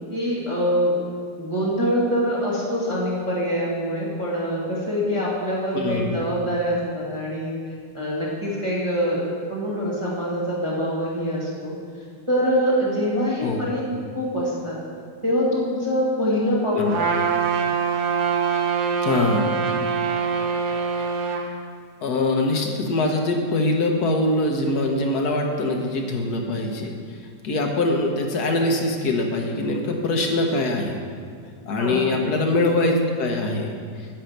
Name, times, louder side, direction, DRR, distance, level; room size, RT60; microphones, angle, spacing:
voice 1, 0.1-0.9 1.4-7.6 7.9-9.2 9.5-11.7 12.3-13.8 14.1-14.8 15.2-16.9 31.8-32.1, equal, 20° right, -7 dB, 1.7 m, -24 dB
voice 2, 5.7-6.2 13.4-13.6 16.7-16.9 19.0-19.5 22.0-27.2 27.4-31.0 31.7-33.8, left 2 dB, 70° left, 2 dB, 1.6 m, -23 dB
Trumpet, 16.9-21.4, right 6 dB, 75° right, 1.5 m, -24 dB
10.5 x 5.1 x 8.0 m, 2.1 s
omnidirectional pair, 1.8 m